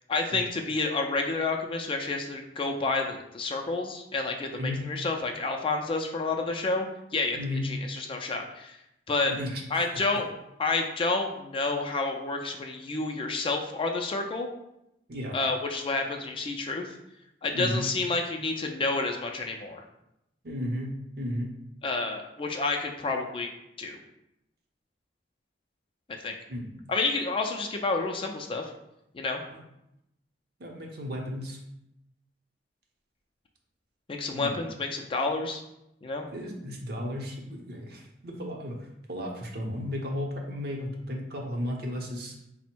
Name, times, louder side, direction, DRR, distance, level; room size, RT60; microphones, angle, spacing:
voice 1, 0.1-6.9 7.1-8.8 9.1-9.3 9.7-10.3 10.6-14.5 15.3-16.9 17.4-19.8 21.8-23.5 23.8-24.0 26.2-26.3 26.9-28.7 29.1-29.4 34.1-35.6 36.0-36.2, left 3 dB, 30° left, 3 dB, 0.4 m, -29 dB
voice 2, 4.5-4.8 7.3-7.6 9.3-9.8 15.1-15.4 17.5-17.9 20.4-21.5 26.5-26.7 29.5-29.6 30.6-31.6 34.3-34.5 36.3-42.3, left 1 dB, 60° right, 0 dB, 0.7 m, -34 dB
4.1 x 2.0 x 4.4 m, 0.84 s
head